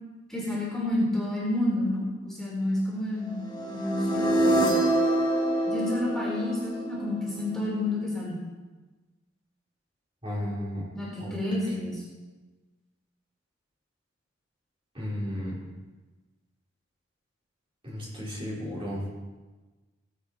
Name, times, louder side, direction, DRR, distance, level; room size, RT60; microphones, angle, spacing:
voice 1, 0.3-3.4 3.7-4.7 5.7-8.4 10.9-12.0, left 1 dB, 5° left, -6 dB, 4.2 m, -30 dB
sound 1, 3.5-7.5, right 1 dB, 25° left, 1.9 m, -26 dB
voice 2, 10.2-10.9 11.2-11.3 14.9-15.6 17.8-19.0, equal, 30° right, -7 dB, 4.7 m, -33 dB
20.5 x 8.4 x 4.4 m, 1.2 s
head